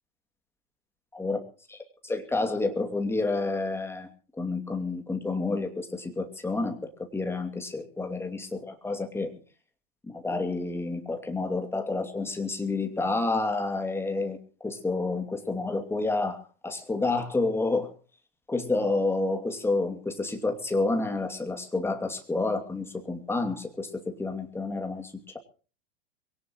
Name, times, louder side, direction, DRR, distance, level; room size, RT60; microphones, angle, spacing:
voice 1, 2.0-4.1 4.4-9.3 10.1-17.9 18.5-25.4, left 3 dB, 10° left, 5 dB, 2.6 m, -29 dB
23.0 x 17.5 x 3.1 m, 0.38 s
figure-of-eight pair, 90°, 31 cm